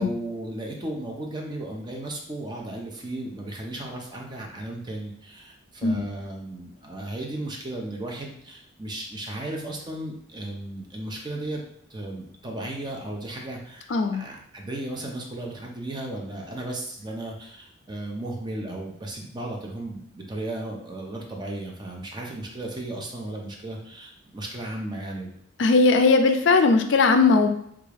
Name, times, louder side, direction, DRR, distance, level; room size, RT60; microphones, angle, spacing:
voice 1, 0.0-11.6 11.9-25.3, right 1 dB, 20° right, 0 dB, 0.5 m, -35 dB
voice 2, 13.9-14.2 25.6-27.5, left 3 dB, 65° left, 7 dB, 0.4 m, -19 dB
3.5 x 2.4 x 3.3 m, 0.73 s
head